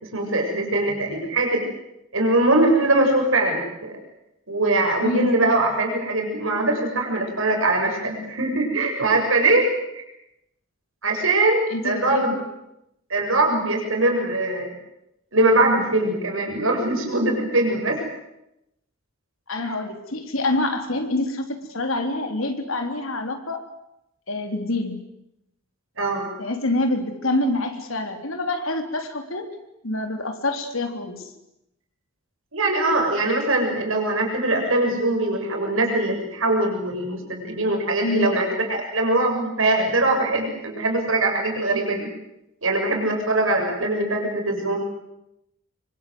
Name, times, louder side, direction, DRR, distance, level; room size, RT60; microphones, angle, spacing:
voice 1, 0.1-1.6 2.1-4.0 4.5-9.7 9.9-10.0 11.0-12.3 13.1-14.7 15.3-18.0 26.0-26.3 32.5-42.1 42.6-44.8, right 2 dB, 75° right, 2 dB, 6.8 m, -22 dB
voice 2, 5.0-5.4 11.7-12.4 19.5-23.6 24.3-25.0 26.4-29.5 29.8-31.3 38.0-38.3, left 2 dB, 75° left, 6 dB, 3.5 m, -26 dB
26.0 x 24.0 x 7.9 m, 0.86 s
head